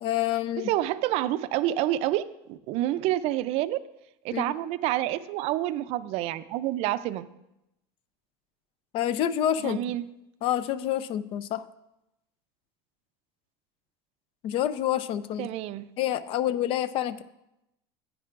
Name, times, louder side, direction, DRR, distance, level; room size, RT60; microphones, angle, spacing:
voice 1, 0.0-0.7 4.3-4.4 8.9-9.8 10.4-11.6 14.4-15.5 16.0-17.2, left 11 dB, 50° left, 15 dB, 0.5 m, -27 dB
voice 2, 0.6-3.8 4.2-7.3 9.6-10.1 15.4-15.9, right 14 dB, 55° right, 14 dB, 0.4 m, -28 dB
10.0 x 9.4 x 2.5 m, 0.89 s
supercardioid pair, 125°, 13 cm